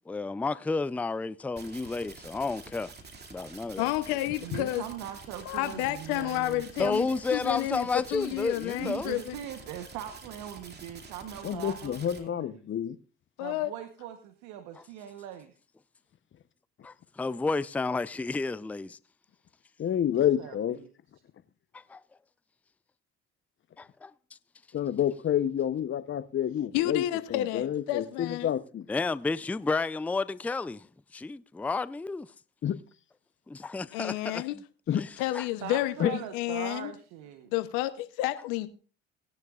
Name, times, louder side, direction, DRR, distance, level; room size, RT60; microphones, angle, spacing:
voice 1, 0.1-2.9 3.3-4.2 6.8-9.1 16.8-19.0 21.7-22.0 23.8-24.1 28.9-30.9 31.1-32.3 33.5-34.6 35.0-35.1 35.3-35.5, left 3 dB, 5° left, 0.4 m, -31 dB
sound 1, 1.6-12.2, right 4 dB, 35° right, 2.5 m, -48 dB
voice 2, 3.8-4.8 5.5-9.4 13.4-13.7 26.7-28.5 33.9-34.5 35.2-36.9 37.5-38.7, left 15 dB, 80° left, 0.8 m, -30 dB
voice 3, 4.4-7.0 8.8-12.6 13.4-15.5 20.2-20.9 35.6-37.5, right 11 dB, 75° right, 1.1 m, -41 dB
voice 4, 11.4-13.0 19.8-20.8 24.7-27.0 27.3-28.9 32.6-32.8 34.9-35.0 36.0-36.2, left 10 dB, 40° left, 0.8 m, -28 dB
18.0 x 10.5 x 2.4 m
supercardioid pair, 70°, 29 cm